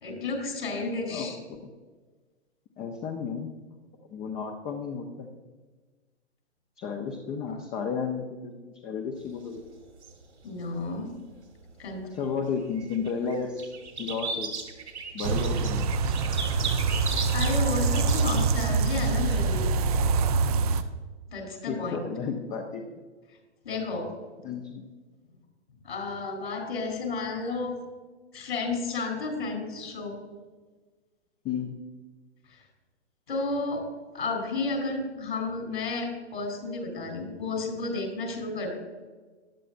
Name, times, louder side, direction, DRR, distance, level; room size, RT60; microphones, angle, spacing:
voice 1, 0.0-1.4 7.5-7.6 10.4-11.1 11.8-12.1 17.3-19.7 21.3-22.0 23.6-24.1 25.8-27.8 28.3-30.2 32.5-32.6 33.3-33.9 34.1-38.7, left 3 dB, 60° left, 3 dB, 3.8 m, -32 dB
voice 2, 1.1-1.6 2.8-3.5 4.1-5.3 6.8-9.6 12.1-13.7 14.0-14.6 15.1-15.8 20.7-20.8 21.7-23.0 24.4-24.9 31.4-31.7, left 6 dB, 20° left, 3 dB, 0.8 m, -33 dB
sound 1, 9.2-11.7 12.1-18.6, right 4 dB, 75° right, 2.4 m, -37 dB
sound 2, 15.2-20.8, right 4 dB, 35° right, 0.6 m, -25 dB
15.5 x 11.0 x 2.6 m, 1.3 s
figure-of-eight pair, 115°, 35 cm